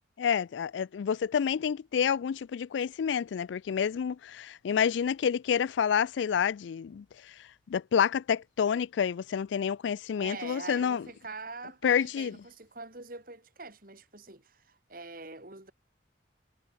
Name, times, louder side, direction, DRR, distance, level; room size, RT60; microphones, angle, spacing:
voice 1, 0.2-7.0 7.7-11.0 11.8-12.4, left 7 dB, 75° left, 0.3 m, -28 dB
voice 2, 10.2-15.7, right 3 dB, 50° right, 3.1 m, -44 dB
head